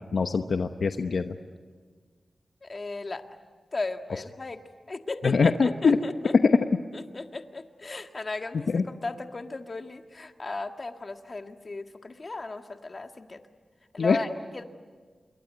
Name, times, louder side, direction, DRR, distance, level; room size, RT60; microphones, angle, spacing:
voice 1, 0.1-1.3 5.2-6.0 6.4-6.5 8.7-8.8 14.0-14.2, left 5 dB, 75° left, 7 dB, 1.0 m, -23 dB
voice 2, 2.6-3.3 3.7-4.6 4.9-6.3 6.9-13.4 13.9-14.3, left 3 dB, 45° left, 6 dB, 1.7 m, -36 dB
27.5 x 22.5 x 9.3 m, 1.5 s
wide cardioid pair, 85°, 0 cm